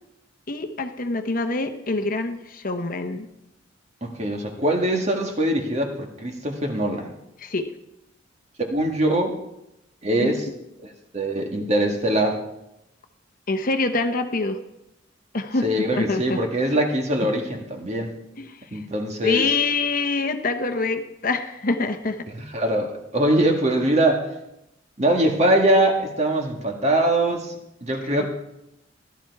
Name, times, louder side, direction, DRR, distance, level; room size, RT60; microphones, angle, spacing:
voice 1, 0.5-3.3 7.4-7.7 10.2-10.4 13.5-14.6 15.3-15.7 15.9-16.8 18.4-18.8 19.2-22.3 28.2-28.3, left 3 dB, 45° left, 7 dB, 0.9 m, -25 dB
voice 2, 4.0-7.1 8.6-9.4 10.0-10.5 10.8-12.4 15.6-18.1 18.7-19.5 22.3-24.3 25.0-27.6 27.8-28.3, right 1 dB, 35° right, 3 dB, 1.7 m, -22 dB
15.0 x 11.5 x 4.7 m, 0.87 s
head